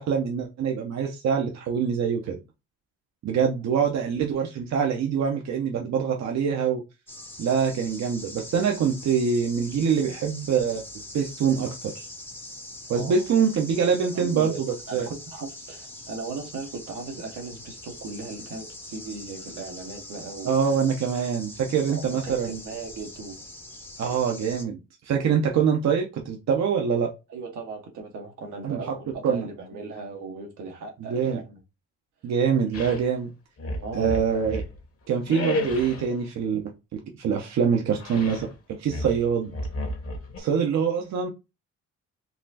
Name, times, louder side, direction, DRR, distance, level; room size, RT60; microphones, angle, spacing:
voice 1, 0.0-2.4 3.2-6.8 7.4-12.1 12.9-15.1 20.5-22.6 24.0-24.8 25.0-27.1 28.6-28.8 29.2-29.5 31.0-31.4 32.2-33.3 33.9-34.6 35.1-36.6 36.9-39.5 40.4-41.3, right 6 dB, 60° right, 0.7 m, -24 dB
sound 1, 7.1-24.7, left 1 dB, 5° left, 0.7 m, -43 dB
voice 2, 12.9-13.4 14.1-14.6 14.9-20.6 21.8-23.4 27.3-31.6 33.8-34.2, right 4 dB, 80° right, 1.2 m, -37 dB
sound 2, 32.7-33.1 33.6-34.8 35.3-36.1 38.0-38.5 38.9-40.4, left 1 dB, 50° left, 1.1 m, -32 dB
4.1 x 2.4 x 2.7 m
cardioid pair, 90°, 30 cm